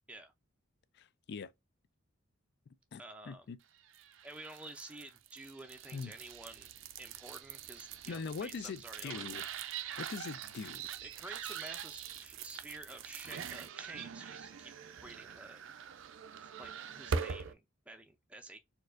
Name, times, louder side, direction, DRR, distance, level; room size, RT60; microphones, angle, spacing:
voice 1, 1.0-1.5 2.9-3.6 5.9-6.1 8.1-9.4 10.0-10.8, left 5 dB, 55° left, 0.4 m, -42 dB
voice 2, 3.0-3.5 4.2-6.7 7.0-9.3 11.0-14.7 15.0-15.6 16.4-18.6, right 2 dB, 5° right, 0.4 m, -50 dB
sound 1, 3.9-17.5, right 6 dB, 65° right, 0.4 m, -43 dB
4.3 x 2.4 x 2.5 m
head